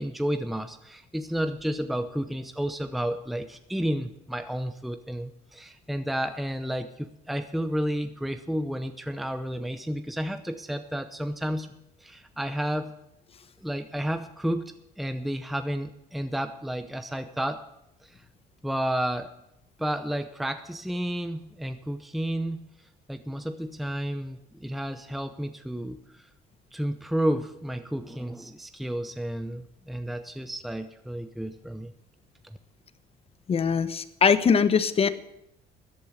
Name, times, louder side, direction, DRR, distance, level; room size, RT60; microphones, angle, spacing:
voice 1, 0.0-12.9 13.6-17.6 18.0-18.2 18.6-19.3 19.8-22.7 23.1-26.3 26.7-31.9 32.4-32.6, equal, ahead, 9 dB, 0.7 m, -31 dB
voice 2, 33.5-35.1, left 6 dB, 35° left, 13 dB, 0.9 m, -22 dB
13.5 x 8.5 x 8.2 m, 0.85 s
cardioid pair, 110°, 17 cm